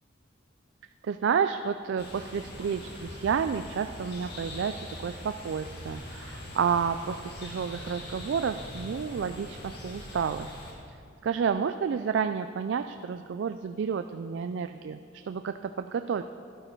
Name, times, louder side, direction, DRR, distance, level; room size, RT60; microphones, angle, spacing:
voice 1, 1.0-4.7 5.0-10.5 11.2-16.2, right 6 dB, 65° right, 9 dB, 0.3 m, -30 dB
sound 1, 2.0-10.7, left 1 dB, 55° left, 1.9 m, -42 dB
11.5 x 11.5 x 4.5 m, 2.4 s
head